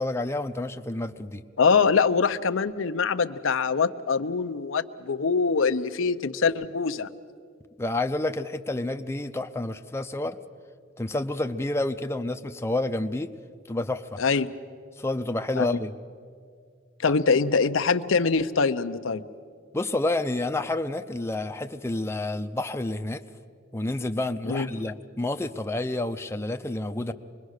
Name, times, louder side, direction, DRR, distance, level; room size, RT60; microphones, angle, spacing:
voice 1, 0.0-1.4 7.8-10.4 11.0-13.3 13.7-14.2 15.0-15.9 17.1-17.2 19.7-23.2 23.7-27.1, left 2 dB, 15° left, 7 dB, 0.6 m, -29 dB
voice 2, 1.6-7.1 14.2-14.5 15.6-15.7 17.0-19.2 24.5-24.7, left 5 dB, 90° left, 10 dB, 0.7 m, -23 dB
26.0 x 21.0 x 6.5 m, 2.1 s
head